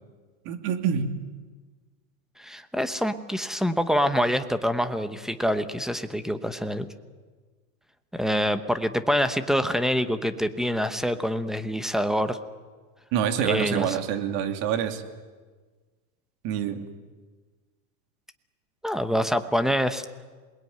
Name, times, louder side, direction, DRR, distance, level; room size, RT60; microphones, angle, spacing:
voice 1, 0.4-1.1 13.1-15.0 16.4-16.8, right 8 dB, 45° right, 7 dB, 2.7 m, -26 dB
voice 2, 2.4-6.9 8.1-12.4 13.4-14.0 18.8-20.0, equal, ahead, 10 dB, 0.8 m, -26 dB
27.0 x 20.5 x 9.4 m, 1.4 s
supercardioid pair, 150°, 49 cm